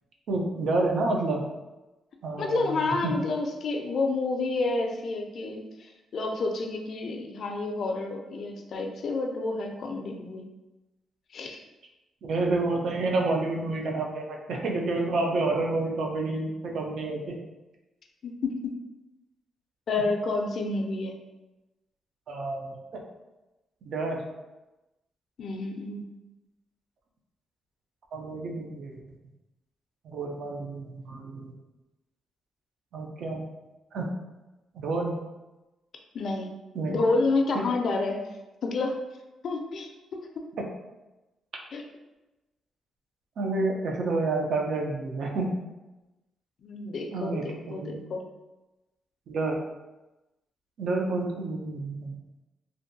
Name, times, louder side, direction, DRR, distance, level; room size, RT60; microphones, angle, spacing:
voice 1, 0.3-1.4 2.2-3.1 12.2-17.4 22.3-23.0 23.8-24.2 28.1-29.0 30.0-31.5 32.9-33.5 33.9-34.1 34.7-35.2 36.7-37.0 40.6-40.7 43.4-45.6 47.1-48.0 49.3-49.5 50.8-52.1, right 2 dB, 65° right, 1 dB, 0.4 m, -29 dB
voice 2, 2.4-10.5 11.3-11.6 18.2-18.8 19.9-21.2 25.4-26.0 36.1-36.5 36.9-38.2 38.6-39.0 39.4-40.2 41.7-41.8 46.6-48.2, left 3 dB, 55° left, 2 dB, 0.3 m, -29 dB
2.5 x 2.2 x 2.6 m, 1.0 s
cardioid pair, 120°, 0 cm